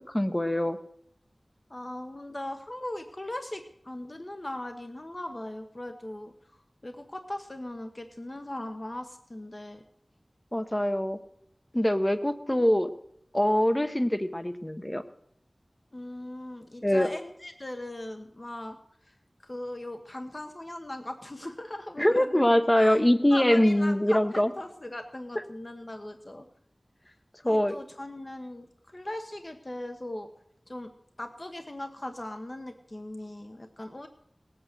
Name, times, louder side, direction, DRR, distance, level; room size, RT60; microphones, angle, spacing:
voice 1, 0.1-0.8 10.5-11.2 11.7-12.9 13.3-15.0 16.8-17.1 22.0-24.5 27.4-27.7, left 1 dB, 20° left, 9 dB, 1.0 m, -23 dB
voice 2, 1.7-6.3 6.8-9.8 12.5-12.7 15.9-18.8 19.0-19.1 19.4-22.5 22.8-23.0 23.3-26.5 27.5-28.7 28.9-30.3 30.7-30.9 31.2-34.1, left 1 dB, 40° left, 6 dB, 1.2 m, -39 dB
18.5 x 8.7 x 6.8 m, 0.71 s
wide cardioid pair, 55°, 0 cm